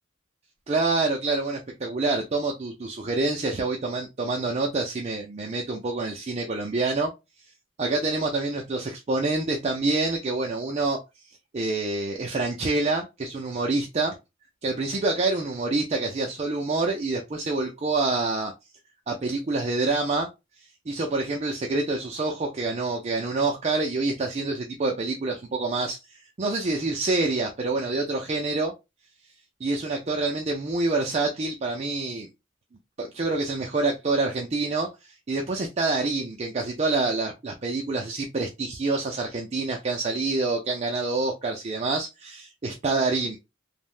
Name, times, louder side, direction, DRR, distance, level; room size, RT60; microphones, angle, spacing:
voice 1, 0.7-7.1 7.8-11.0 11.5-14.2 14.6-18.5 19.1-20.3 20.9-28.7 29.6-32.3 33.0-43.4, right 3 dB, 35° right, 0.4 m, -27 dB
3.4 x 2.1 x 2.4 m
head